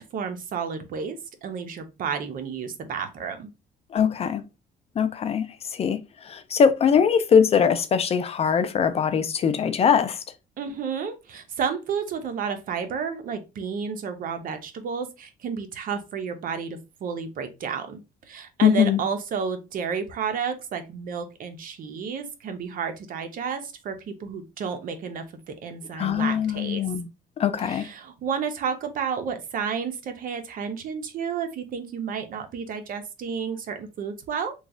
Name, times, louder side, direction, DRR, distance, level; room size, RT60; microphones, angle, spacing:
voice 1, 0.1-3.5 10.6-26.8 27.6-34.5, right 6 dB, 55° right, 0.7 m, -31 dB
voice 2, 3.9-4.4 5.0-10.2 18.6-19.0 26.0-27.1 27.4-27.9, left 7 dB, 35° left, 0.4 m, -22 dB
3.1 x 2.3 x 3.7 m
cardioid pair, 110°, 17 cm